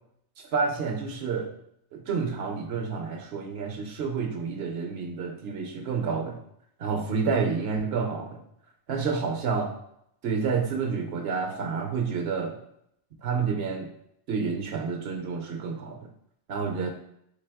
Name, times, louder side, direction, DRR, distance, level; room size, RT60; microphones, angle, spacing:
voice 1, 0.5-1.5 1.9-6.4 6.8-8.4 8.9-9.7 10.2-12.6 13.2-13.9 14.3-16.1 16.5-16.9, right 5 dB, 65° right, 3 dB, 0.8 m, -29 dB
4.0 x 3.3 x 3.4 m, 0.74 s
omnidirectional pair, 1.3 m